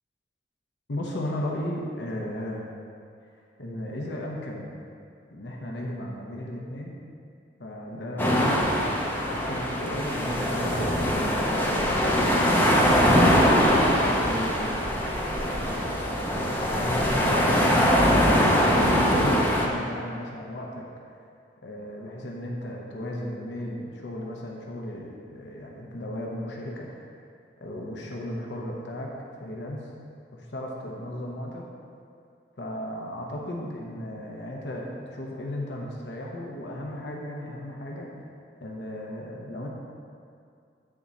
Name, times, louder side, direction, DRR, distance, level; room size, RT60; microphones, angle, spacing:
voice 1, 0.9-2.7 3.6-4.8 5.3-7.0 7.6-8.9 9.3-10.9 11.5-12.6 13.1-14.8 16.7-20.8 21.6-26.9 27.6-29.1 29.4-29.9 30.3-31.6 32.6-38.1 38.6-39.7, left 1 dB, 75° left, -1 dB, 0.8 m, -35 dB
sound 1, 8.2-19.7, equal, 10° left, 0.7 m, -22 dB
8.6 x 3.7 x 4.1 m, 2.4 s
head